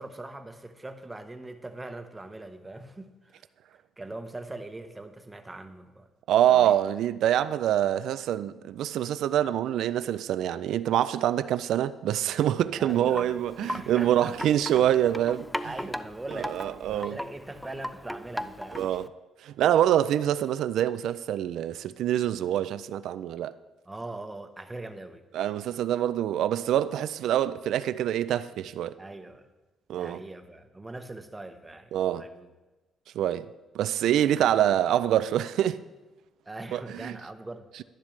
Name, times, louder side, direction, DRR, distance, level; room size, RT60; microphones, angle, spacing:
voice 1, 0.0-3.5 4.0-6.1 6.5-6.7 12.8-14.9 15.6-18.9 23.9-25.2 29.0-29.5 29.9-32.5 36.4-37.7, right 2 dB, 15° right, 1.0 m, -41 dB
voice 2, 6.3-15.5 16.3-17.2 18.7-19.1 19.4-23.5 25.3-29.0 29.9-30.2 31.9-32.3 33.2-33.5 33.7-35.8 36.7-37.2, right 11 dB, 80° right, 0.3 m, -25 dB
Wind chime, 12.9-19.1, equal, 5° left, 0.4 m, -38 dB
11.5 x 10.5 x 3.2 m
cardioid pair, 90°, 0 cm